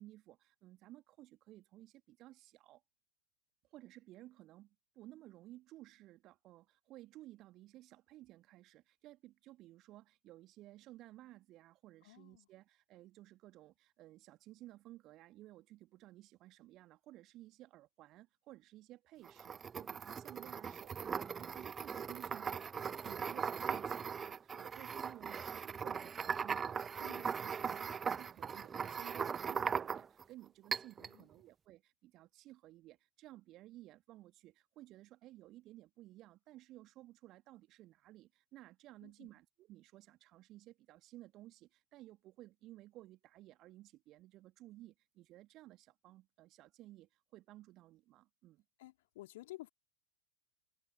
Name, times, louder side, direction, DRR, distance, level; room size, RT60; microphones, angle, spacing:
voice 1, 0.0-2.8 3.7-48.6, right 16 dB, 35° right, 2.7 m, -56 dB
voice 2, 12.0-12.5 27.0-27.3 31.0-31.3 39.0-39.3 48.8-49.7, left 17 dB, 55° left, 3.2 m, -53 dB
sound 1, 19.2-30.2 30.7-31.1, right 6 dB, 20° right, 0.3 m, -39 dB
figure-of-eight pair, 90°, 0 cm